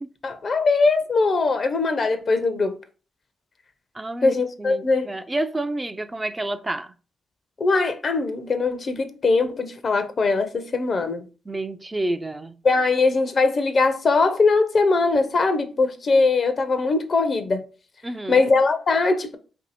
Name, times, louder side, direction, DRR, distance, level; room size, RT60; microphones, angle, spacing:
voice 1, 0.2-2.8 4.2-5.1 7.6-11.2 12.6-17.6 18.3-19.4, left 3 dB, 50° left, 0.5 m, -21 dB
voice 2, 3.9-6.9 11.5-12.6 18.0-18.4, right 2 dB, 25° right, 0.3 m, -29 dB
2.7 x 2.6 x 4.0 m
hypercardioid pair, 45°, 0 cm